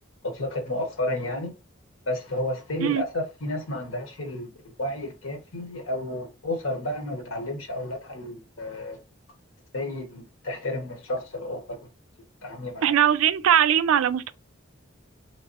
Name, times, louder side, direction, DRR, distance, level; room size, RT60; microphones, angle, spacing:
voice 1, 0.2-1.5 2.1-4.5 4.8-9.0 9.7-11.9 12.4-12.9, left 1 dB, 90° left, 1.0 m, -31 dB
voice 2, 12.8-14.3, right 9 dB, 85° right, 0.4 m, -20 dB
3.3 x 3.2 x 2.7 m
head